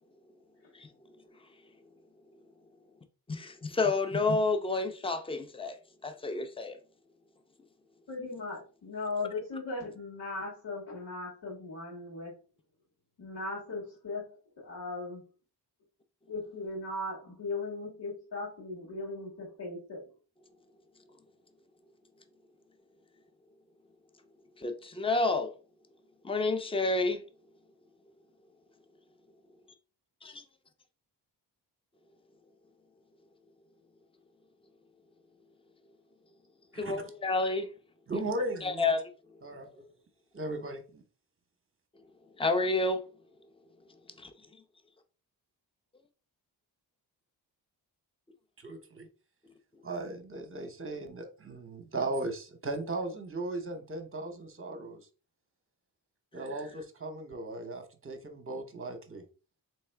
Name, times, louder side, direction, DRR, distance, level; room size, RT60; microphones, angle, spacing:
voice 1, 3.3-5.8 6.0-6.8 24.6-25.5 26.2-27.2 30.2-30.3 36.7-37.7 38.6-39.0 42.4-43.0 44.2-44.3, left 3 dB, 10° left, 0.6 m, -29 dB
voice 2, 8.1-12.3 13.2-15.2 16.3-20.1, left 3 dB, 60° left, 2.1 m, -38 dB
voice 3, 38.1-38.8 39.4-39.9 40.3-41.0 48.6-49.1 49.8-55.0 56.3-59.2, right 2 dB, 30° right, 0.9 m, -37 dB
3.5 x 3.3 x 3.4 m
cardioid pair, 65°, 44 cm